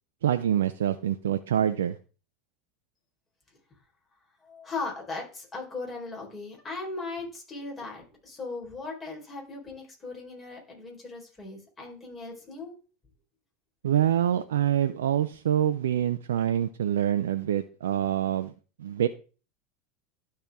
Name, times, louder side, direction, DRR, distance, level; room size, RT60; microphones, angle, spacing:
voice 1, 0.2-2.0 13.8-18.5 18.8-19.1, right 10 dB, 80° right, 9 dB, 0.5 m, -25 dB
voice 2, 4.4-12.7, left 3 dB, 25° left, -1 dB, 4.1 m, -38 dB
12.0 x 4.3 x 3.5 m, 0.36 s
hypercardioid pair, 85°, 0 cm